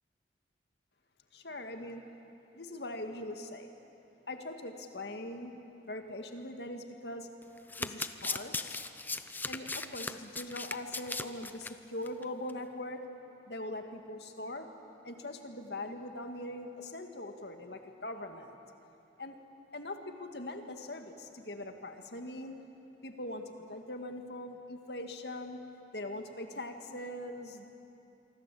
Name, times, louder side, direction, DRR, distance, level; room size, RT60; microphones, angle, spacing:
voice 1, 1.3-2.0 2.5-3.7 4.3-5.5 5.8-7.3 7.8-8.8 9.5-13.0 13.5-14.7 15.0-18.6 19.2-19.4 19.7-22.6 23.0-25.6 25.9-27.7, left 1 dB, 65° left, 5 dB, 2.1 m, -41 dB
Domestic sounds home sounds, 7.6-11.7 12.1-12.2 12.5-12.6, left 3 dB, 10° left, 0.7 m, -38 dB
26.0 x 24.0 x 8.5 m, 2.9 s
head